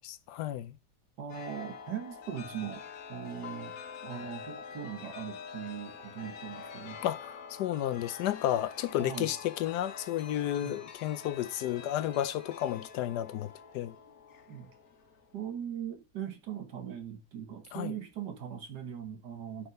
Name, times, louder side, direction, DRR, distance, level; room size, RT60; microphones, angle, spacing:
voice 1, 0.3-0.8 7.0-13.9 17.7-17.9, left 12 dB, 80° left, 1.2 m, -32 dB
voice 2, 1.2-3.8 4.0-7.0 9.0-9.3 10.6-10.8 14.5-14.7 15.3-19.7, right 8 dB, 80° right, 1.9 m, -40 dB
Chime, 1.3-15.5, left 6 dB, 65° left, 1.4 m, -46 dB
9.8 x 4.5 x 5.3 m
omnidirectional pair, 1.8 m